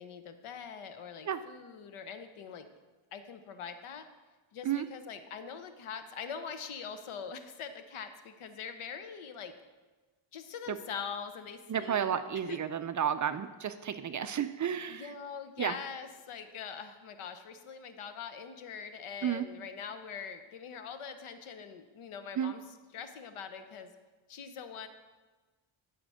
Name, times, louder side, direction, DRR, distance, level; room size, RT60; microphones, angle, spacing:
voice 1, 0.0-2.7 3.1-4.0 4.5-9.5 10.3-12.6 14.9-22.6 22.9-23.9 24.3-24.9, left 6 dB, 80° left, 9 dB, 1.0 m, -43 dB
voice 2, 11.7-15.1 15.6-15.8 19.2-19.5 22.4-22.5, right 9 dB, 40° right, 10 dB, 0.4 m, -32 dB
12.5 x 5.1 x 6.3 m, 1.3 s
wide cardioid pair, 135°, 50 cm